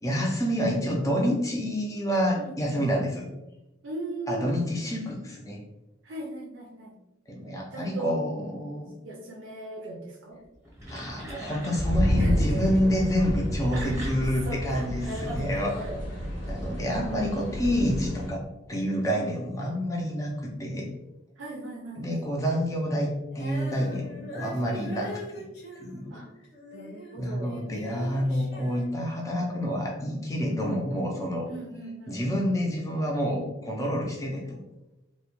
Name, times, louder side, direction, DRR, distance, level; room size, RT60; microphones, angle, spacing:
voice 1, 0.0-3.3 4.3-5.6 7.3-8.9 10.9-15.7 16.5-18.4 18.7-20.9 22.0-25.4 25.8-26.1 27.2-31.5 32.1-34.6, equal, 15° left, -2 dB, 0.3 m, -28 dB
voice 2, 2.4-3.0 3.8-4.5 6.0-7.0 7.7-8.2 9.0-10.4 12.2-12.7 13.7-14.0 14.4-16.0 21.4-22.3 26.1-26.3 26.7-27.6 31.5-32.2, right 1 dB, 80° right, -1 dB, 0.4 m, -38 dB
sound 1, 10.5-12.2 13.4-16.5, right 1 dB, 15° right, 0.7 m, -42 dB
sound 2, 11.7-18.3, equal, 85° left, 0.9 m, -29 dB
Female singing, 23.3-27.2 27.4-29.6, left 1 dB, 60° left, 0.7 m, -42 dB
2.1 x 2.1 x 2.8 m, 0.96 s
head